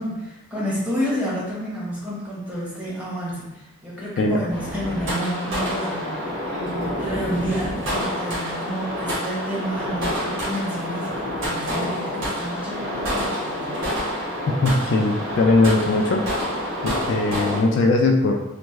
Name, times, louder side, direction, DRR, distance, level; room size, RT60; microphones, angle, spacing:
voice 1, 0.0-13.9, equal, 5° right, -7 dB, 0.9 m, -30 dB
sound 1, 4.5-17.6, equal, 75° right, 1.3 m, -28 dB
voice 2, 14.6-16.3 16.8-18.3, left 2 dB, 60° left, 2 dB, 0.3 m, -19 dB
3.3 x 2.0 x 3.1 m, 0.95 s
head